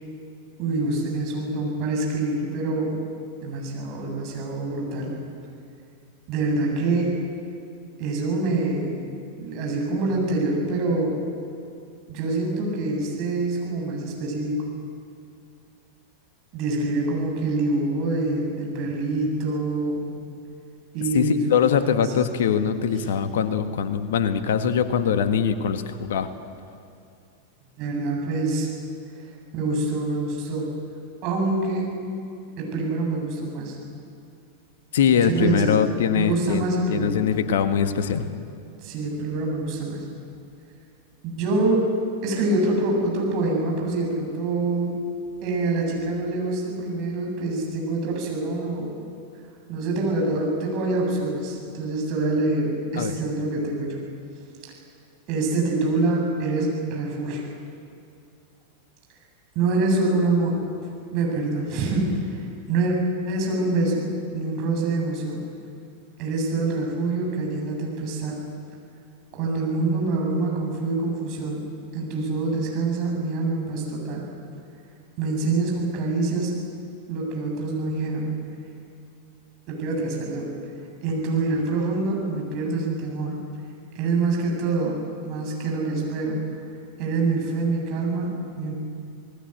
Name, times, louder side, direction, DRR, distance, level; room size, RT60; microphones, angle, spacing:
voice 1, 0.6-3.0 3.4-5.1 6.3-7.2 8.0-8.9 9.4-11.2 12.1-14.5 16.5-20.1 20.9-22.0 27.8-28.7 29.2-29.3 29.5-30.7 31.2-31.9 32.6-33.8 35.2-35.8 36.1-37.2 38.8-40.0 41.2-41.9 42.2-44.9 45.4-49.0 49.7-54.0 55.3-57.4 59.5-60.6 61.1-63.0 63.3-64.1 64.3-65.4 66.2-68.4 69.3-71.6 71.9-74.3 75.2-76.5 77.1-78.3 79.7-80.5 81.0-83.4 83.9-85.0 85.2-86.4 87.0-88.7, right 2 dB, 40° right, -1 dB, 7.8 m, -25 dB
voice 2, 21.1-26.3 34.9-36.6 36.9-38.3 53.0-53.1, left 7 dB, 60° left, 9 dB, 1.6 m, -22 dB
27.5 x 19.5 x 8.2 m, 2.5 s
figure-of-eight pair, 90°, 0 cm